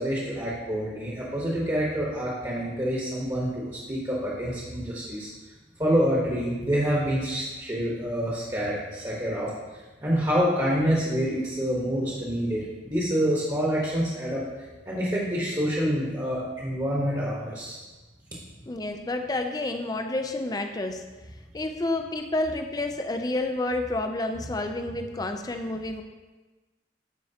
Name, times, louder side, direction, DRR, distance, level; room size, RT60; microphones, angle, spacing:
voice 1, 0.0-5.3 5.8-9.5 10.0-14.4 14.9-17.8, equal, 20° right, -6 dB, 1.1 m, -27 dB
voice 2, 18.7-21.0 21.5-26.0, left 2 dB, 20° left, 6 dB, 0.4 m, -29 dB
12.0 x 4.4 x 2.8 m, 1.2 s
head